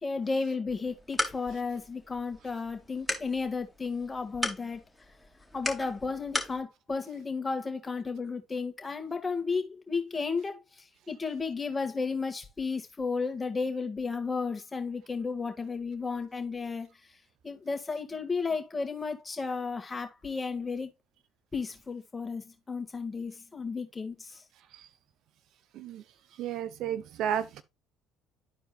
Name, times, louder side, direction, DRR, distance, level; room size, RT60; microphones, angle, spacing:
voice 1, 0.0-4.8 5.5-16.9 17.4-20.9 21.5-24.4, left 4 dB, 25° left, 1.9 m, -33 dB
sound 1, 0.7-6.6, left 1 dB, ahead, 2.3 m, -37 dB
voice 2, 26.4-27.6, right 9 dB, 65° right, 0.7 m, -32 dB
12.0 x 4.6 x 2.4 m
hypercardioid pair, 70°, 0 cm